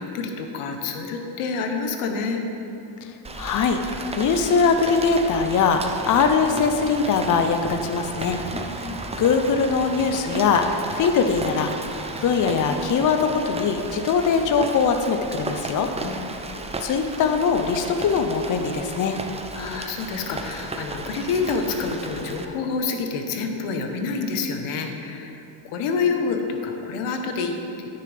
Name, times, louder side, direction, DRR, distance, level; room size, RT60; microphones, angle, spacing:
voice 1, 0.0-2.4 8.5-9.0 16.0-16.4 19.5-27.9, left 4 dB, 80° left, 4 dB, 1.1 m, -28 dB
Rain, 3.2-22.4, right 2 dB, 15° right, 0.5 m, -34 dB
voice 2, 3.4-8.4 8.8-8.9 9.2-11.7 12.2-15.9 16.8-19.2, left 5 dB, 40° left, 6 dB, 0.7 m, -21 dB
13.5 x 6.7 x 3.4 m, 2.9 s
cardioid pair, 100°, 50 cm